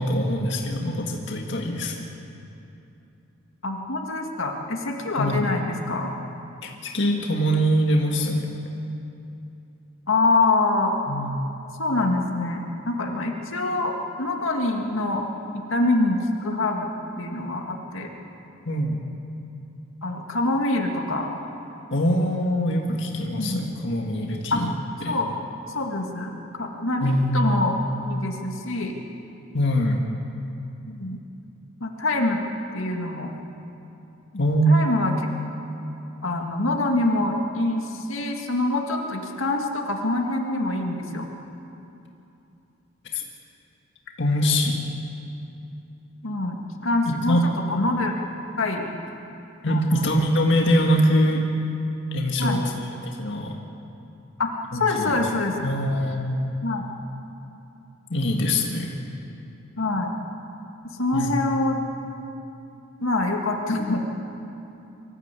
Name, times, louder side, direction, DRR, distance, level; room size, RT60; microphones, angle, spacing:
voice 1, 0.0-2.1 5.2-5.5 6.6-8.5 11.1-11.5 18.7-19.0 21.9-24.7 25.0-25.1 27.0-27.5 29.5-30.0 34.3-34.8 43.1-43.2 44.2-44.8 47.1-47.5 49.6-51.4 52.1-52.9 53.2-53.5 54.7-55.1 55.6-56.6 58.1-59.0 61.1-61.3, equal, 60° left, 1 dB, 2.0 m, -23 dB
voice 2, 3.6-6.1 10.1-10.9 11.8-15.3 15.5-16.9 17.2-18.1 20.0-21.3 23.4-23.7 24.5-24.6 25.1-25.3 25.7-27.8 28.1-29.0 30.9-31.2 31.8-32.4 32.7-33.3 34.7-35.1 36.2-41.3 46.2-48.1 48.6-48.9 49.7-50.1 52.4-52.6 54.4-55.7 56.6-56.9 59.8-60.1 61.0-61.8 63.0-64.0, left 2 dB, 80° left, 2 dB, 2.1 m, -25 dB
24.0 x 15.0 x 8.4 m, 2.8 s
head